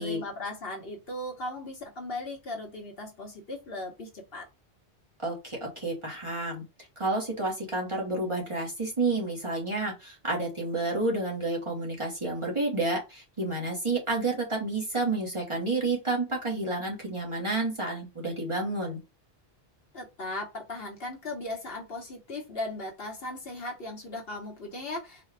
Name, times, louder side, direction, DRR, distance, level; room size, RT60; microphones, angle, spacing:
voice 1, 0.0-4.4 19.9-25.3, left 2 dB, 60° left, 1.3 m, -37 dB
voice 2, 5.2-6.6 7.0-19.0, right 2 dB, 30° right, 1.1 m, -30 dB
4.1 x 2.3 x 3.3 m
omnidirectional pair, 1.1 m